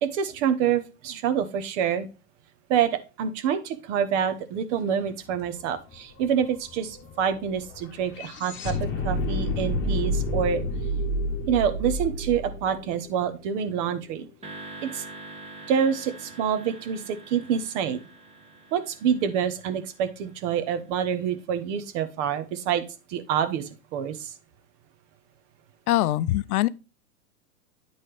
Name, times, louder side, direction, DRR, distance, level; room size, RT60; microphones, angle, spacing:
voice 1, 0.0-2.1 2.7-10.6 11.5-14.3 14.8-15.0 15.7-18.0 18.7-22.8 23.1-24.3, right 8 dB, 50° right, 1.1 m, -27 dB
sound 1, 5.2-5.3 5.6-13.8, left 1 dB, 25° left, 1.1 m, -30 dB
sound 2, 14.4-20.8, right 2 dB, 15° right, 1.1 m, -45 dB
voice 2, 25.9-26.7, left 15 dB, 70° left, 0.5 m, -22 dB
9.6 x 4.0 x 3.3 m
hypercardioid pair, 130°, 47 cm